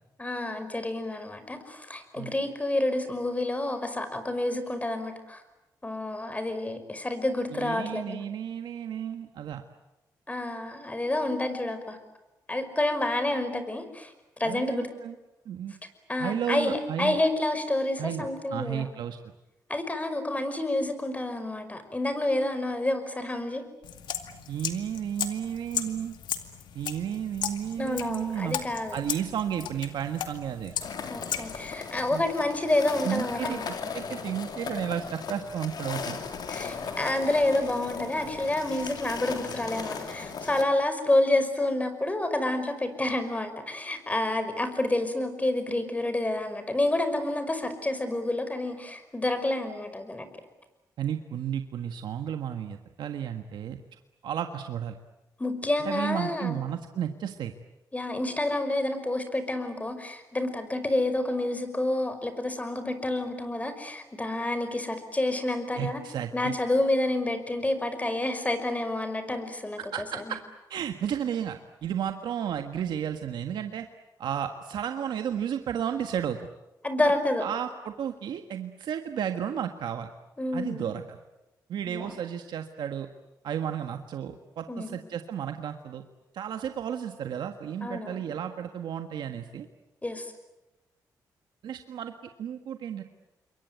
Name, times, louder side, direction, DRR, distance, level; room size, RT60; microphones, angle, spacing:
voice 1, 0.2-5.4 5.8-8.3 10.3-12.0 12.5-14.9 16.1-18.9 19.7-23.6 27.8-29.0 31.1-33.6 36.5-50.3 55.4-56.6 57.9-66.0 66.3-69.8 70.1-70.3 76.8-77.4 80.4-80.9 81.8-82.1 84.7-85.0 87.8-88.2 90.0-90.3, left 1 dB, 20° left, 9 dB, 5.6 m, -29 dB
voice 2, 7.5-9.6 14.4-15.1 15.4-15.7 16.2-17.2 18.0-18.2 18.5-19.2 24.5-26.1 26.7-28.6 28.9-30.7 32.1-32.2 33.0-36.2 51.0-53.8 54.2-55.0 55.8-57.5 65.7-66.5 69.8-70.4 70.7-73.9 74.2-76.5 77.4-80.1 80.5-81.2 81.7-83.1 83.4-86.0 86.3-89.7 91.6-92.1 92.4-93.0, right 9 dB, 80° right, 7 dB, 1.6 m, -33 dB
sound 1, 23.8-31.7, left 9 dB, 85° left, 2.2 m, -36 dB
sound 2, 30.8-40.6, left 5 dB, 65° left, 3.5 m, -37 dB
28.0 x 23.0 x 9.3 m, 0.99 s
cardioid pair, 70°, 8 cm